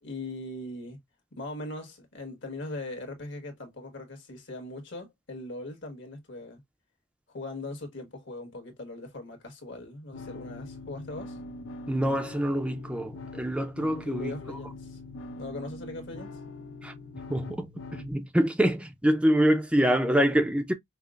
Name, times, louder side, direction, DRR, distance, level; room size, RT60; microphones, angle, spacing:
voice 1, 0.0-1.0 1.3-6.6 7.3-11.4 14.0-15.0 15.4-16.3, left 2 dB, 65° left, 1.4 m, -40 dB
sound 1, 10.1-18.1, left 2 dB, 85° left, 0.6 m, -43 dB
voice 2, 11.9-14.4 16.8-16.9 17.3-20.7, equal, 5° right, 0.4 m, -25 dB
5.6 x 2.0 x 2.3 m
head